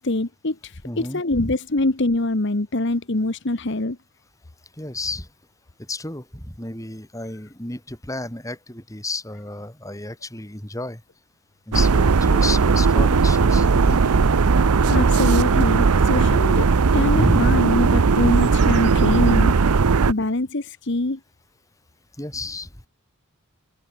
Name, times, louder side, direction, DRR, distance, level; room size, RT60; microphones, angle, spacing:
voice 1, 0.0-4.0 14.9-19.5 20.1-21.2, left 2 dB, 55° left, 1.2 m, -24 dB
voice 2, 0.8-1.5 4.8-5.3 5.9-11.0 11.7-14.2 17.1-17.6 22.2-22.9, left 2 dB, 15° left, 3.6 m, -31 dB
sound 1, 11.7-20.1, right 4 dB, 85° right, 0.7 m, -17 dB
head